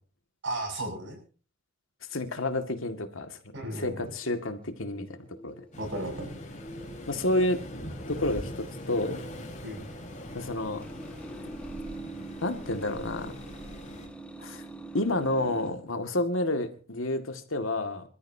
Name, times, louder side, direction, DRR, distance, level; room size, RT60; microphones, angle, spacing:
voice 1, 0.4-1.2 3.5-4.1 5.8-6.3 9.6-9.9, right 1 dB, 65° right, 4 dB, 7.0 m, -34 dB
voice 2, 2.1-3.4 3.7-5.1 5.4-5.5 7.1-7.6 8.1-9.2 10.3-10.8 12.4-13.3 14.4-14.6 14.9-18.0, left 1 dB, 85° left, 6 dB, 2.1 m, -29 dB
sound 1, 4.1-15.7, right 2 dB, 5° left, 1.6 m, -45 dB
Waves surf, 5.7-14.1, left 1 dB, 40° left, 4.3 m, -42 dB
26.5 x 13.5 x 2.8 m, 0.39 s
head